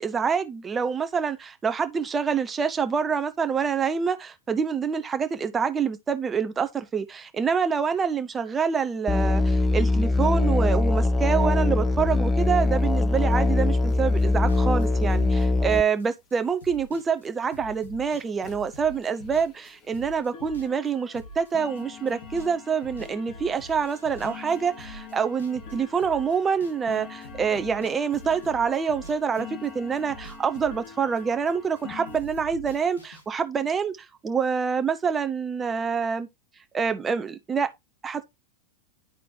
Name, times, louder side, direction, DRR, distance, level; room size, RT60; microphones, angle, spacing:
voice 1, 0.0-34.0 34.2-36.3 36.7-37.7 38.0-38.2, right 6 dB, 20° right, 1.0 m, -26 dB
Musical instrument, 9.1-15.8, left 2 dB, 15° left, 0.7 m, -22 dB
sound 1, 12.5-12.6 12.9-13.0 13.1-13.3 13.7-14.0 14.8-14.9 15.4-15.5 15.9-16.0 16.3-16.4 16.9-17.0 17.4-17.6 18.0-18.1 18.4-32.2, left 7 dB, 40° left, 1.7 m, -45 dB
sound 2, 13.9-21.8 22.1-22.5 22.8-27.0 27.2-31.8 32.1-33.2, right 1 dB, 80° left, 2.1 m, -45 dB
12.0 x 4.1 x 2.8 m
figure-of-eight pair, 90°, 0 cm